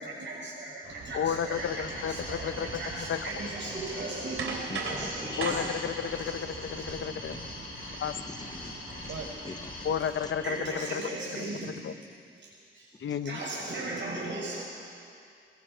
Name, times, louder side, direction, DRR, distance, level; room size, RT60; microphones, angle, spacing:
voice 1, 0.0-5.6 7.8-7.9 9.1-9.2 10.4-11.9 12.4-12.5 12.7-12.9 13.2-14.6, right 2 dB, 65° right, -4 dB, 6.8 m, -37 dB
sound 1, 0.8-9.3, right 3 dB, 80° right, 3.1 m, -40 dB
voice 2, 1.1-2.7 3.0-3.3 5.4-7.5 8.0-8.1 9.8-11.2 11.6-11.9 13.0-13.4, left 8 dB, 70° left, 11 dB, 0.8 m, -32 dB
sound 2, 1.5-10.8, left 1 dB, 45° left, 6.7 m, -42 dB
voice 3, 4.7-5.7 8.3-9.1 9.4-9.9 10.2-10.3 13.1-13.2 13.6-13.7, left 2 dB, 20° left, 6 dB, 0.8 m, -43 dB
22.5 x 21.0 x 5.6 m, 2.4 s
wide cardioid pair, 150°, 21 cm